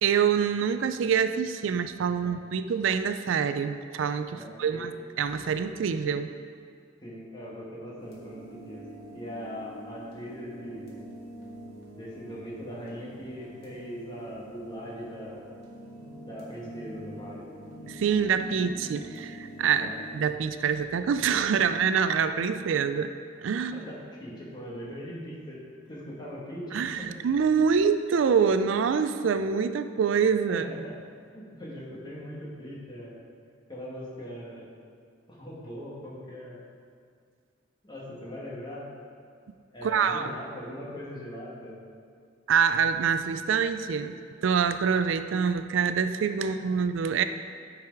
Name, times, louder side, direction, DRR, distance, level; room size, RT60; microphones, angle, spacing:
voice 1, 0.0-4.9 5.2-6.3 17.9-23.1 23.4-23.8 26.7-30.7 39.8-40.3 42.5-44.2 44.4-47.2, right 6 dB, 75° right, 10 dB, 0.4 m, -25 dB
voice 2, 4.3-4.9 7.0-8.9 9.1-10.9 11.9-15.5 16.2-17.5 19.8-20.0 23.7-25.6 25.9-27.1 30.5-31.0 31.3-33.2 33.7-34.7 35.3-36.6 37.8-38.9 39.7-41.8 46.4-46.5, equal, 25° left, -6 dB, 1.8 m, -40 dB
sound 1, 8.0-20.3, right 1 dB, 55° left, 2.1 m, -45 dB
10.5 x 4.8 x 4.7 m, 2.2 s
head